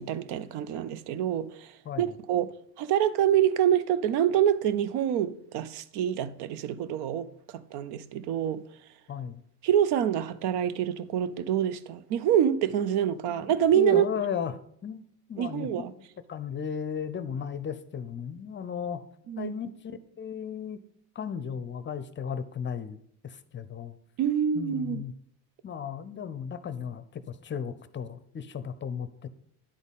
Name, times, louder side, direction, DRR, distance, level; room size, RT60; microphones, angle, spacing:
voice 1, 0.0-1.7 2.0-2.5 2.8-7.3 7.5-8.6 9.6-14.1 15.4-15.9 19.3-19.5 24.2-25.0, right 10 dB, 65° right, 0.7 m, -26 dB
voice 2, 9.1-9.4 13.3-14.5 14.8-15.0 15.3-15.7 16.3-19.0 19.4-20.8 21.2-24.0 24.5-25.1 25.6-29.3, left 7 dB, 25° left, 0.6 m, -35 dB
10.0 x 4.0 x 5.5 m
supercardioid pair, 85°, 43 cm